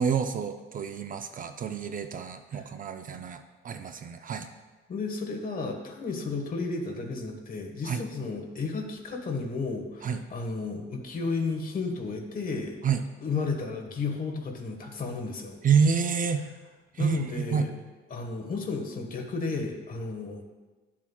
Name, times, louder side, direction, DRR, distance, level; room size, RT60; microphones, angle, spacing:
voice 1, 0.0-4.5 7.8-8.0 10.0-10.2 12.8-13.0 15.6-16.5 16.9-17.7, right 6 dB, 40° right, 8 dB, 0.5 m, -28 dB
voice 2, 4.9-12.7 13.2-15.6 17.0-17.7 18.1-20.4, left 4 dB, 45° left, 3 dB, 1.3 m, -33 dB
12.0 x 7.3 x 2.3 m, 1.2 s
cardioid pair, 130°, 20 cm